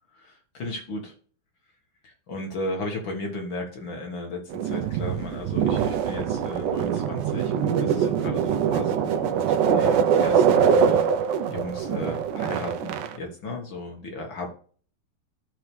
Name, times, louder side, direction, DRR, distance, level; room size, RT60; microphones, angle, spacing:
voice 1, 0.1-1.1 2.0-11.1 11.5-14.5, left 2 dB, 55° left, 1 dB, 1.3 m, -35 dB
sound 1, 4.5-13.2, right 7 dB, 75° right, 2.0 m, -23 dB
13.5 x 4.7 x 3.3 m, 0.44 s
omnidirectional pair, 4.4 m